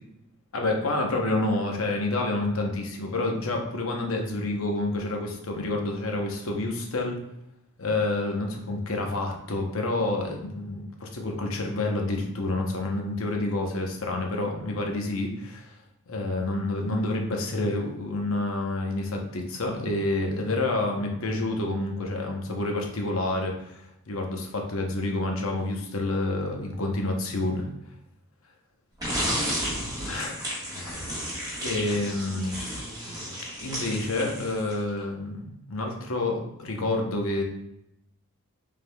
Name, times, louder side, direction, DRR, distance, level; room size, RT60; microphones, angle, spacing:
voice 1, 0.5-7.2 7.8-15.7 16.1-27.7 30.0-30.4 30.7-31.3 31.6-32.6 33.6-37.4, left 2 dB, 75° left, 1 dB, 0.9 m, -28 dB
sound 1, 29.0-34.9, equal, 20° right, 1.5 m, -32 dB
5.0 x 3.6 x 2.3 m, 0.81 s
head